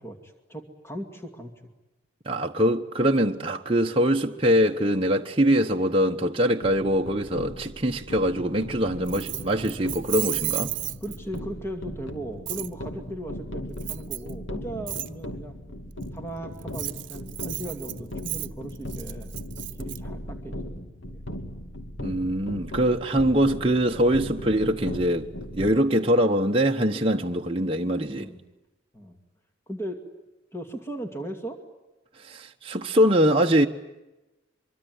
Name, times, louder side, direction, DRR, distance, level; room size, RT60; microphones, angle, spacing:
voice 1, 0.0-1.5 11.0-15.6 16.1-19.3 19.8-20.8 21.1-21.2 25.9-26.1 28.1-28.4 28.9-29.2 29.7-30.0 30.5-31.6, right 1 dB, 15° left, 2.4 m, -37 dB
voice 2, 2.3-10.7 22.0-28.3 32.2-33.7, equal, 25° right, 1.1 m, -23 dB
sound 1, 6.6-25.8, left 1 dB, 70° left, 2.8 m, -38 dB
Keys jangling, 9.1-11.4 12.5-12.7 13.8-14.3 14.9-15.1 16.6-20.0, right 18 dB, 65° right, 1.0 m, -33 dB
24.5 x 24.0 x 9.5 m
head